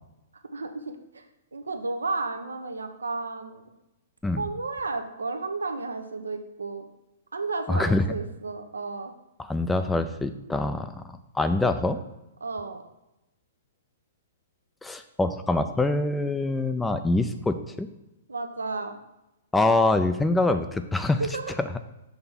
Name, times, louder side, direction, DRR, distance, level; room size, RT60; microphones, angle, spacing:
voice 1, 0.5-1.3 1.5-3.6 4.4-6.8 7.3-9.1 12.4-12.8 18.3-19.0 20.5-20.6 21.2-21.5, right 3 dB, 85° right, 6 dB, 0.8 m, -32 dB
voice 2, 7.7-8.1 9.4-11.0 11.3-12.0 14.8-17.9 19.5-21.2, left 2 dB, 5° left, 9 dB, 0.4 m, -24 dB
5.9 x 3.3 x 5.7 m, 0.92 s
hypercardioid pair, 120°, 0 cm